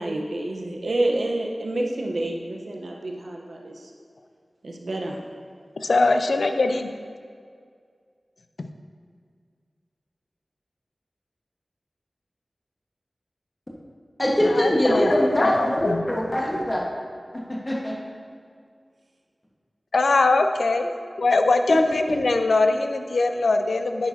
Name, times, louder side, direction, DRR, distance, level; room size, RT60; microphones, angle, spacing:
voice 1, 0.0-3.9 4.6-5.2, right 1 dB, 85° right, 0 dB, 1.0 m, -28 dB
voice 2, 5.8-6.9 14.6-16.0 19.9-20.9 21.2-24.1, left 3 dB, 85° left, 7 dB, 0.5 m, -22 dB
voice 3, 14.2-16.9 17.3-18.0 21.7-21.8, equal, 30° left, -3 dB, 1.5 m, -22 dB
9.6 x 8.8 x 2.8 m, 2.1 s
wide cardioid pair, 45°, 0 cm